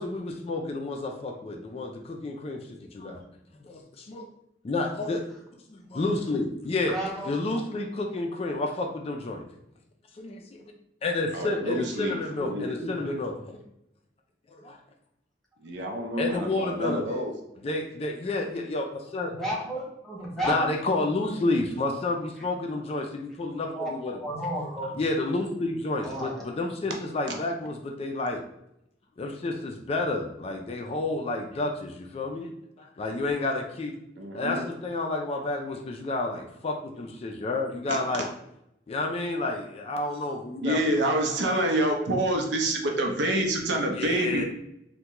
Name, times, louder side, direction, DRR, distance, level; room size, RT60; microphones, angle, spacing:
voice 1, 0.0-3.2 3.6-4.3 4.6-5.2 5.7-6.9 7.3-9.4 10.2-10.6 11.0-13.6 14.5-14.8 16.2-17.0 17.6-19.3 20.5-24.2 25.0-28.4 29.2-32.5 32.8-33.9 34.3-38.3 38.9-40.8 43.9-44.4, left 2 dB, 35° left, 2 dB, 0.3 m, -30 dB
voice 2, 6.9-7.6 12.3-13.0 19.2-20.7 23.7-24.9 26.0-26.5, right 1 dB, ahead, -5 dB, 0.8 m, -33 dB
voice 3, 11.3-12.2 12.5-12.8 15.6-17.3 27.3-27.4 34.2-34.6 37.9-38.3 40.6-44.4, right 1 dB, 75° right, 2 dB, 0.6 m, -27 dB
3.4 x 2.2 x 2.9 m, 0.78 s
head